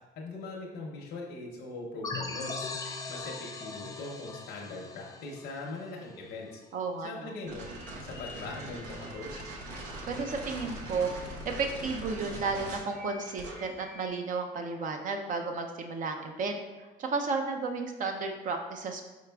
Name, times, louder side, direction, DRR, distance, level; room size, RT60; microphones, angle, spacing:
voice 1, 0.2-2.7 3.1-6.6 7.0-7.7 8.0-9.5, left 2 dB, 75° left, -2 dB, 0.7 m, -41 dB
sound 1, 2.0-6.5, left 3 dB, 20° left, 0.4 m, -40 dB
voice 2, 6.7-7.4 9.8-16.6 17.0-19.0, right 4 dB, 50° right, 4 dB, 0.5 m, -33 dB
sound 2, 7.5-14.1, right 1 dB, 90° right, 0.9 m, -42 dB
4.9 x 4.6 x 2.3 m, 1.1 s
cardioid pair, 110°, 17 cm